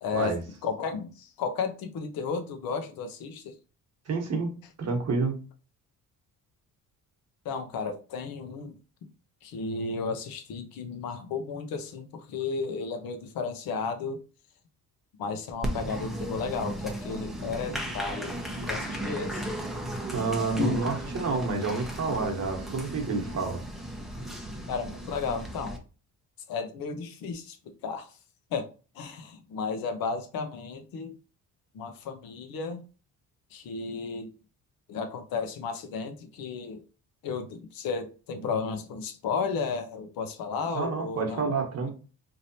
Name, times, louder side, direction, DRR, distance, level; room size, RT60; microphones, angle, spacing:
voice 1, 0.0-3.6 7.4-8.7 9.0-9.1 9.4-14.2 15.2-18.4 18.6-19.5 20.6-20.8 24.7-25.8 26.5-28.2 28.5-31.1 31.7-32.8 33.5-34.3 34.9-36.8 37.2-41.5, left 5 dB, 75° left, 0.8 m, -33 dB
voice 2, 4.1-4.5 4.8-5.4 20.1-23.6 40.7-41.9, right 4 dB, 45° right, 1.1 m, -29 dB
Applause, 15.6-25.8, right 1 dB, ahead, 0.7 m, -35 dB
3.3 x 2.8 x 2.6 m
cardioid pair, 110°, 35 cm